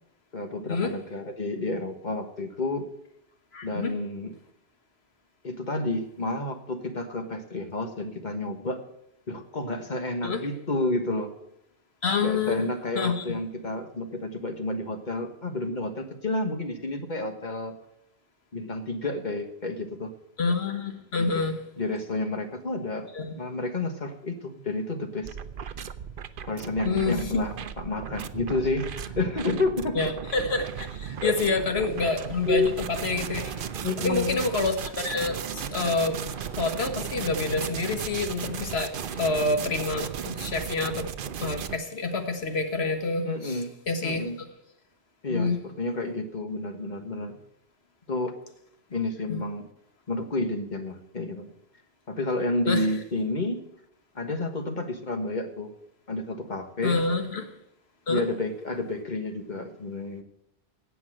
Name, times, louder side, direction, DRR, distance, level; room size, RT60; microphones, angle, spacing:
voice 1, 0.3-2.9 3.6-4.3 5.4-8.8 9.3-11.3 12.2-17.7 18.5-20.1 21.2-21.4 21.8-23.1 23.4-25.4 26.5-30.0 31.2-31.3 32.5-32.7 33.8-34.4 43.2-43.7 44.0-44.4 45.2-47.4 48.1-48.3 48.9-49.6 50.1-51.5 52.1-53.6 54.1-55.7 56.1-57.0 58.1-60.2, left 2 dB, 45° left, 6 dB, 1.5 m, -30 dB
voice 2, 3.5-3.9 10.2-10.5 12.0-12.6 13.0-13.3 20.4-21.6 23.1-23.4 26.8-27.3 30.0-33.7 34.0-36.2 36.5-41.1 41.4-44.2 45.3-45.6 49.3-49.4 52.7-52.9 56.8-57.5 58.1-58.2, left 3 dB, 70° left, 6 dB, 1.7 m, -28 dB
sound 1, 25.2-41.8, right 8 dB, 60° right, 0.8 m, -36 dB
sound 2, 31.9-39.3, right 1 dB, 10° left, 3.2 m, -50 dB
16.5 x 5.9 x 7.6 m, 0.77 s
omnidirectional pair, 1.1 m